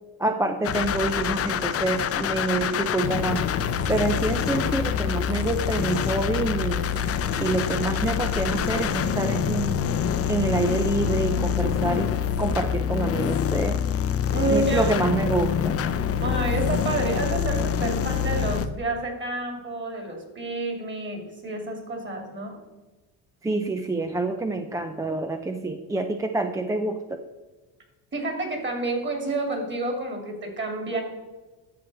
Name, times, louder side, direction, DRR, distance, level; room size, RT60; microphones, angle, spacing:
voice 1, 0.2-3.4 3.9-6.9 7.4-9.8 10.3-12.1 12.4-13.8 14.5-15.8 23.4-27.2, right 2 dB, 10° right, 6 dB, 0.4 m, -27 dB
sound 1, 0.6-18.7, left 8 dB, 35° left, 0.6 m, -26 dB
voice 2, 14.3-14.9 16.2-22.6 28.1-31.0, right 2 dB, 25° right, 3 dB, 2.4 m, -29 dB
11.5 x 7.0 x 4.1 m, 1.2 s
cardioid pair, 130°, 41 cm